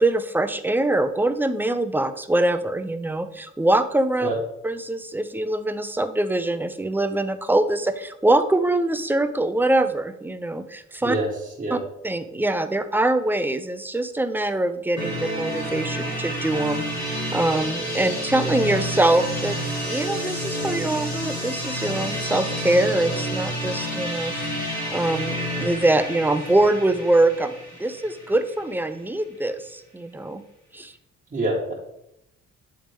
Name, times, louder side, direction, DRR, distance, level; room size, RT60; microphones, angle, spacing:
voice 1, 0.0-4.3 4.6-11.2 11.7-11.8 12.0-19.6 19.8-27.5 27.8-30.4 30.7-30.9, right 2 dB, 5° right, 10 dB, 0.4 m, -23 dB
sound 1, 15.0-28.7, equal, 70° left, 2.0 m, -29 dB
voice 2, 31.3-31.7, right 2 dB, 30° right, -6 dB, 1.3 m, -25 dB
8.8 x 3.5 x 3.4 m, 0.81 s
cardioid pair, 90°, 30 cm